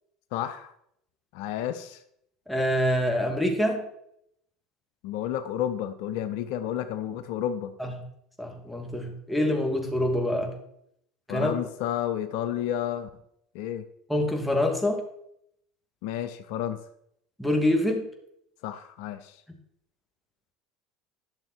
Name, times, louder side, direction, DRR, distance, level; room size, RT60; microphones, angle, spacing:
voice 1, 0.3-0.7 1.3-2.0 5.0-7.7 11.3-13.1 13.5-13.8 16.0-16.8 18.6-19.4, left 11 dB, 70° left, 10 dB, 0.7 m, -31 dB
voice 2, 2.5-3.8 7.8-7.9 8.4-10.5 11.3-11.5 14.1-15.0 17.4-18.0, left 1 dB, 5° left, 1 dB, 2.7 m, -25 dB
12.0 x 6.6 x 4.5 m, 0.74 s
hypercardioid pair, 80°, 0 cm